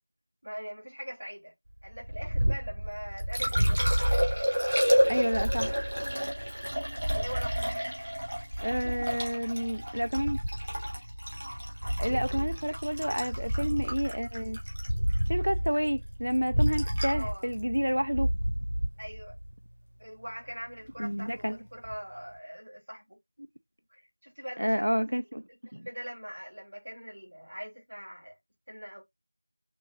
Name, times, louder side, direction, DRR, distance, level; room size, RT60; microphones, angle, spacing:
voice 1, 0.4-1.5 1.8-3.9 5.0-5.4 7.1-7.9 8.7-9.3 11.6-11.7 12.1-13.2 17.1-17.5 19.0-19.4 20.0-23.2 23.9-24.9 25.7-28.4 28.7-29.0, equal, 45° right, 3.4 m, -42 dB
Purr, 1.8-19.5, equal, 15° right, 1.9 m, -31 dB
Liquid, 2.9-19.0 21.8-22.0, equal, 30° right, 1.3 m, -32 dB
voice 2, 5.1-5.7 8.6-10.4 11.8-14.6 15.3-18.3 21.0-21.6 24.6-25.4 25.7-25.9, equal, 75° right, 0.4 m, -29 dB
6.2 x 2.9 x 2.4 m
figure-of-eight pair, 180°, 0 cm